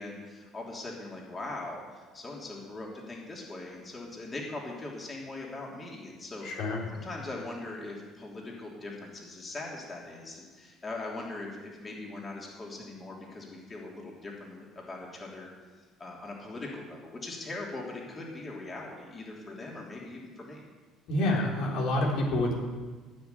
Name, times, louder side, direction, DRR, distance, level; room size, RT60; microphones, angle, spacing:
voice 1, 0.0-6.5 6.9-15.5 15.8-20.7, left 2 dB, 25° left, -2 dB, 3.2 m, -41 dB
voice 2, 6.4-6.8 21.1-22.5, left 1 dB, 75° left, -2 dB, 3.7 m, -27 dB
15.0 x 6.3 x 9.4 m, 1.4 s
cardioid pair, 105°, 0 cm